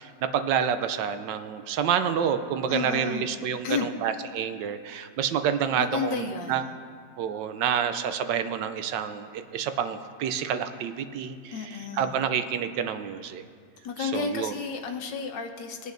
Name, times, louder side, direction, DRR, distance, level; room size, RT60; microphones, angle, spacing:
voice 1, 0.0-6.6 7.2-11.5 12.0-13.4 14.0-14.5, right 8 dB, 75° right, 9 dB, 1.2 m, -28 dB
voice 2, 2.7-3.3 3.6-3.9 5.8-6.8 11.5-12.2 13.8-15.9, left 5 dB, 70° left, 4 dB, 1.5 m, -32 dB
23.5 x 8.1 x 2.6 m, 2.2 s
omnidirectional pair, 2.0 m